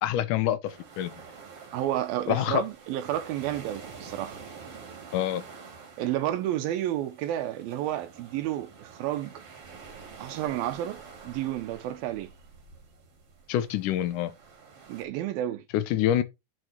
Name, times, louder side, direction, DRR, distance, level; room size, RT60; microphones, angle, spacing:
voice 1, 0.0-1.1 2.3-2.6 5.1-5.4 13.5-14.3 15.7-16.2, left 12 dB, 70° left, 2.2 m, -26 dB
sound 1, 0.7-15.0, right 5 dB, 40° right, 3.0 m, -48 dB
voice 2, 1.7-4.4 6.0-9.4 10.2-11.0 11.3-12.3 14.9-15.6, right 12 dB, 80° right, 2.6 m, -31 dB
9.9 x 6.3 x 4.5 m
omnidirectional pair, 4.3 m